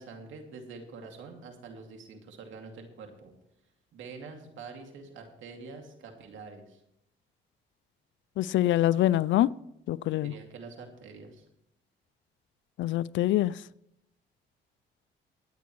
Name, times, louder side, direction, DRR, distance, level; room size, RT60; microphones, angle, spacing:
voice 1, 0.0-3.3 3.9-6.8 10.2-11.4, right 4 dB, 80° right, 2.3 m, -46 dB
voice 2, 8.4-9.5 9.9-10.3 12.8-13.5, left 14 dB, 70° left, 0.4 m, -25 dB
22.5 x 9.4 x 3.1 m
cardioid pair, 90°, 20 cm